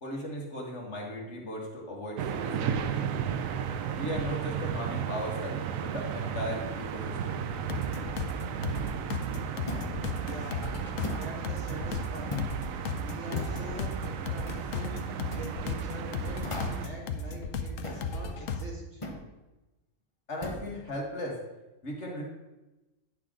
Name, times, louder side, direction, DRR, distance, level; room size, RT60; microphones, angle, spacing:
voice 1, 0.0-3.2 3.9-7.4 20.3-21.4 21.8-22.2, equal, 60° left, -2 dB, 2.0 m, -37 dB
sound 1, 2.2-16.9, right 8 dB, 85° right, 1.0 m, -34 dB
sound 2, 7.6-18.6, left 4 dB, 80° left, 1.1 m, -35 dB
sound 3, 9.7-10.0 11.0-11.3 12.3-12.6 13.3-13.6 14.5-14.7 15.3-15.5 16.4-16.9 17.8-18.1 19.0-19.2 20.4-20.7, left 3 dB, 25° left, 0.9 m, -37 dB
voice 2, 10.2-10.7 11.2-12.3 12.9-14.9 15.3-19.0, right 2 dB, 60° right, -2 dB, 2.1 m, -44 dB
9.5 x 6.7 x 3.7 m, 1.1 s
omnidirectional pair, 1.4 m